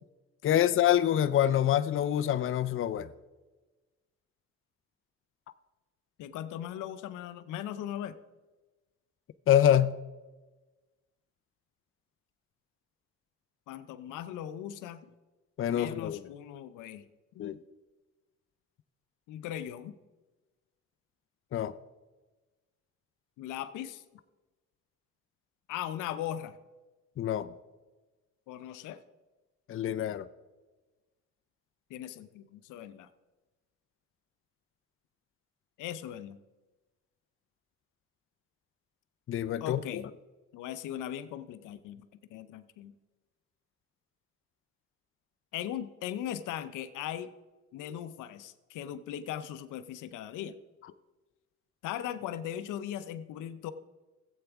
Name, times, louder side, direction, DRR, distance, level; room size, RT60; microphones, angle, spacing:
voice 1, 0.4-3.1 9.5-10.0 15.6-16.2 17.4-17.6 21.5-21.7 27.2-27.5 29.7-30.3 39.3-40.0, left 11 dB, 45° left, 13 dB, 0.5 m, -26 dB
voice 2, 6.2-8.1 13.7-15.0 15.7-17.1 17.3-17.6 19.3-20.0 23.4-24.0 25.7-26.6 28.5-29.0 31.9-33.1 35.8-36.4 39.6-40.1 40.5-42.0 42.3-42.9 45.5-47.3 47.7-50.5 51.8-53.7, left 11 dB, 90° left, 12 dB, 0.6 m, -39 dB
15.0 x 8.1 x 3.5 m, 1.2 s
cardioid pair, 90°, 30 cm